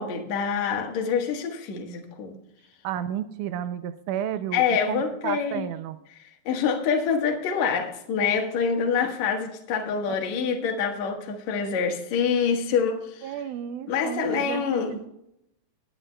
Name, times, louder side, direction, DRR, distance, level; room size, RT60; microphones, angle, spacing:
voice 1, 0.0-2.4 4.5-5.6 6.2-13.3 13.9-15.0, left 6 dB, 60° left, 3 dB, 2.5 m, -26 dB
voice 2, 2.8-6.0 10.1-10.8 13.2-15.1, right 10 dB, 80° right, 12 dB, 1.8 m, -32 dB
20.5 x 11.0 x 2.2 m, 0.80 s
omnidirectional pair, 4.0 m